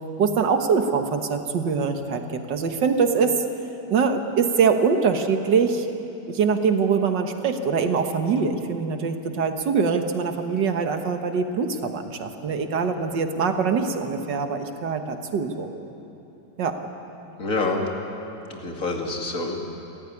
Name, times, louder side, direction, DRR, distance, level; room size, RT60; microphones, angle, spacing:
voice 1, 0.2-3.4 3.9-5.9 6.3-15.7 16.6-16.8, right 5 dB, 85° right, 6 dB, 2.0 m, -23 dB
voice 2, 17.4-17.9 18.5-19.6, left 3 dB, 50° left, 1 dB, 2.7 m, -27 dB
28.5 x 14.0 x 9.8 m, 2.9 s
omnidirectional pair, 1.9 m